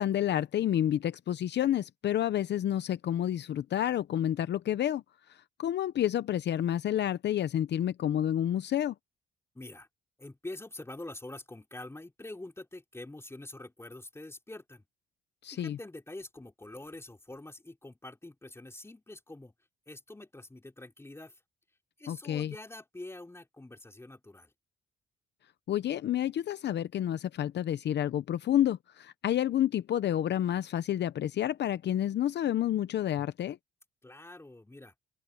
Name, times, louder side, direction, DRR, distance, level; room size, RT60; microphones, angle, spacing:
voice 1, 0.0-5.0 5.6-8.9 15.4-15.8 22.1-22.5 25.7-33.6, left 11 dB, 60° left, 0.7 m, -29 dB
voice 2, 9.5-9.9 10.2-14.8 15.5-19.5 19.9-21.4 22.0-24.5 34.0-34.9, left 2 dB, 15° left, 3.6 m, -45 dB
open air
cardioid pair, 90°, 20 cm